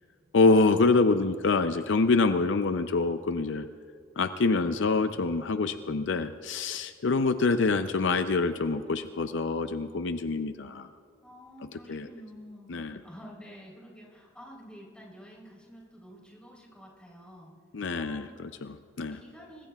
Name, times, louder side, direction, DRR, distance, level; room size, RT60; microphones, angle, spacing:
voice 1, 0.3-3.7 4.2-10.9 11.9-12.1 12.7-13.0 17.7-19.2, left 3 dB, 70° left, 9 dB, 0.5 m, -26 dB
voice 2, 11.2-12.7 13.0-17.5 17.9-18.4 19.1-19.7, equal, 5° left, -4 dB, 3.7 m, -49 dB
25.0 x 20.0 x 2.4 m, 2.1 s
head